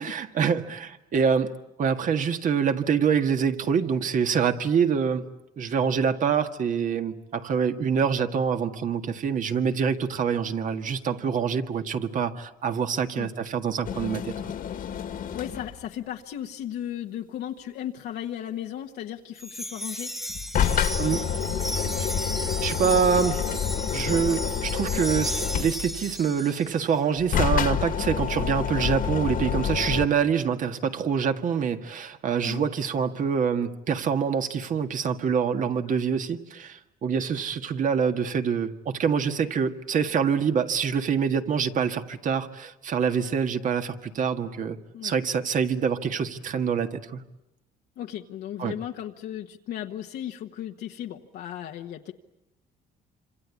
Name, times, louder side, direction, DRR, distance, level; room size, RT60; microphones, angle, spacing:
voice 1, 0.0-1.5 1.8-5.3 5.6-14.4 21.0-21.2 21.8-22.1 22.6-23.4 23.9-44.8 45.0-47.2 48.6-48.8, right 7 dB, 50° right, 7 dB, 1.8 m, -25 dB
sound 1, 13.8-15.8 20.3-26.1 27.2-30.1, left 8 dB, 55° left, 1.8 m, -28 dB
voice 2, 15.3-20.1 32.5-32.7 44.9-45.1 48.0-52.1, left 11 dB, 75° left, 2 dB, 1.3 m, -35 dB
Wind chime, 19.4-26.9, equal, ahead, 1.0 m, -35 dB
27.0 x 26.5 x 8.4 m, 0.90 s
cardioid pair, 110°, 17 cm